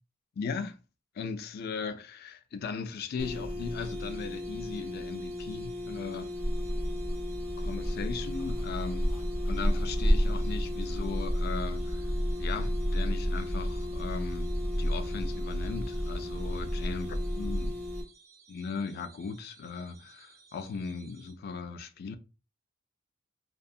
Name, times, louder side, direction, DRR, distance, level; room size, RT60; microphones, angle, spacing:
voice 1, 0.4-0.8 1.2-6.3 7.6-9.2 9.5-12.0 12.4-14.5 14.8-17.8 18.5-22.2, left 5 dB, 50° left, 0.3 m, -38 dB
sound 1, 3.2-18.0, left 2 dB, 35° right, 0.5 m, -38 dB
sound 2, 3.8-21.3, right 5 dB, 75° right, 0.6 m, -58 dB
sound 3, 6.4-17.7, equal, 80° left, 1.1 m, -31 dB
2.7 x 2.3 x 2.3 m
head